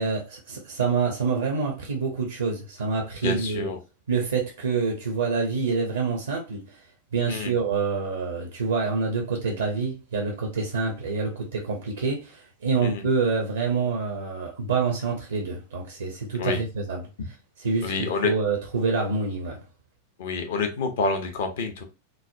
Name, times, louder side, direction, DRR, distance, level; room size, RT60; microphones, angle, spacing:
voice 1, 0.0-3.7 4.1-6.8 7.1-17.1 17.6-19.6, right 4 dB, 70° right, 0.5 m, -27 dB
voice 2, 3.2-3.8 7.3-7.5 12.8-13.0 16.4-16.6 17.8-18.3 20.2-21.8, left 4 dB, 60° left, 0.6 m, -27 dB
3.1 x 2.0 x 2.5 m
figure-of-eight pair, 90°, 0 cm